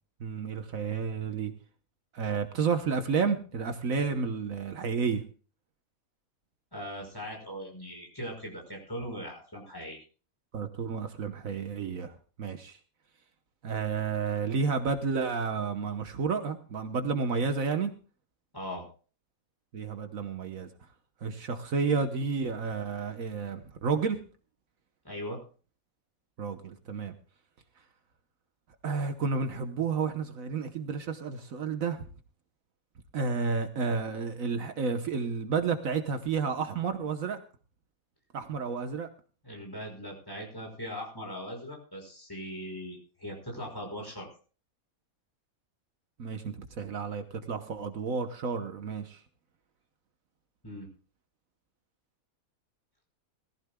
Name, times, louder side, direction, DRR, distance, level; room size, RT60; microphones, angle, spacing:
voice 1, 0.2-1.5 2.1-5.2 10.5-12.8 13.6-17.9 19.7-20.7 21.2-24.2 26.4-27.1 28.8-32.1 33.1-37.4 38.3-39.1 46.2-49.2, right 5 dB, 70° right, 8 dB, 1.4 m, -31 dB
voice 2, 6.7-10.0 18.5-18.9 25.0-25.4 39.4-44.3 50.6-50.9, equal, 15° left, 0 dB, 5.6 m, -40 dB
21.5 x 15.0 x 2.2 m, 0.37 s
omnidirectional pair, 1.5 m